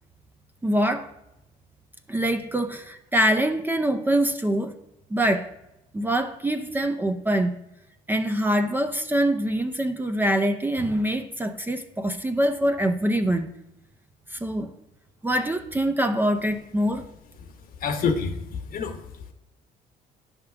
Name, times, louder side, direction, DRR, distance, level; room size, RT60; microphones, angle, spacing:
voice 1, 0.6-1.1 2.1-4.8 5.1-5.5 5.9-7.6 8.1-13.5 14.3-14.7 15.2-17.0, right 1 dB, 10° right, 0.5 m, -24 dB
voice 2, 17.8-19.0, left 5 dB, 60° left, 1.0 m, -27 dB
9.3 x 3.6 x 6.8 m
cardioid pair, 110°, 17 cm